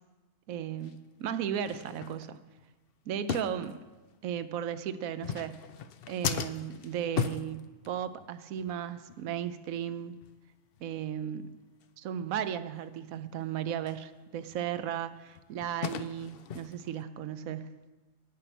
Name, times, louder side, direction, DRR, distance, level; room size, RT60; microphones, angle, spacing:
voice 1, 0.5-2.4 3.1-3.8 4.2-5.6 6.1-10.1 10.8-11.6 12.0-17.8, right 9 dB, 85° right, 13 dB, 1.1 m, -35 dB
sound 1, 0.8-0.9 1.6-2.6 3.3-4.2 5.1-8.3 8.6-8.8 9.1-9.3 9.7-9.8 10.2-10.4 10.8-10.9 11.3-11.4 11.8-11.9 13.9-14.0 14.5-17.0, left 8 dB, 60° left, 0.7 m, -37 dB
13.5 x 5.9 x 9.2 m, 1.2 s
omnidirectional pair, 1.4 m